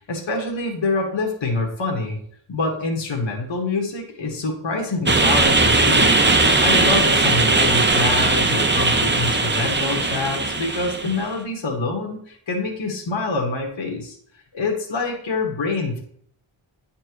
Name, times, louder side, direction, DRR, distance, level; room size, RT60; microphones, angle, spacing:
voice 1, 0.1-2.2 2.5-6.2 6.6-14.1 14.5-16.0, left 3 dB, 65° left, 0 dB, 1.5 m, -26 dB
sound 1, 5.1-11.3, right 3 dB, 20° right, 0.7 m, -18 dB
9.2 x 4.4 x 3.1 m, 0.63 s
wide cardioid pair, 110°, 50 cm